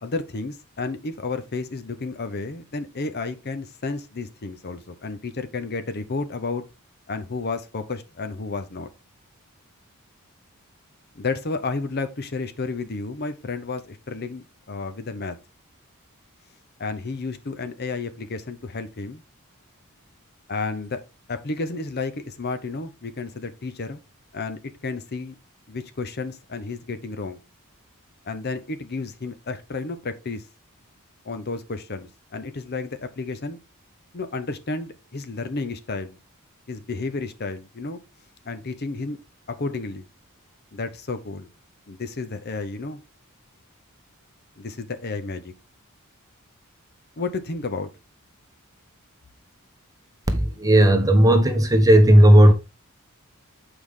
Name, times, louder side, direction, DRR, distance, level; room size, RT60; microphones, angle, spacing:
voice 1, 0.0-6.6 7.1-8.9 11.2-15.4 16.8-19.2 20.5-21.0 21.3-24.0 24.3-25.3 25.7-27.4 28.2-30.4 31.2-33.6 34.1-36.2 36.7-38.0 38.5-39.2 39.5-40.1 40.7-41.5 41.9-43.0 44.6-45.5 47.2-47.9, left 3 dB, 45° left, 0.7 m, -31 dB
voice 2, 50.3-52.5, right 1 dB, 15° right, 1.1 m, -14 dB
8.5 x 4.9 x 3.6 m
head